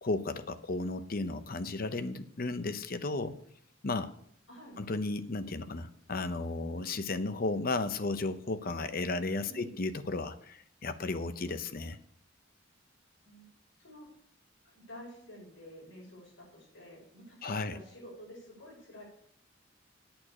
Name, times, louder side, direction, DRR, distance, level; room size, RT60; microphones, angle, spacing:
voice 1, 0.0-3.4 3.8-4.1 4.8-12.0 17.4-17.8, left 3 dB, 50° left, 11 dB, 0.7 m, -34 dB
voice 2, 4.5-4.8 9.5-9.7 13.2-13.5 13.8-14.1 14.6-19.0, equal, 85° left, -3 dB, 5.8 m, -50 dB
8.8 x 6.7 x 8.6 m, 0.69 s
head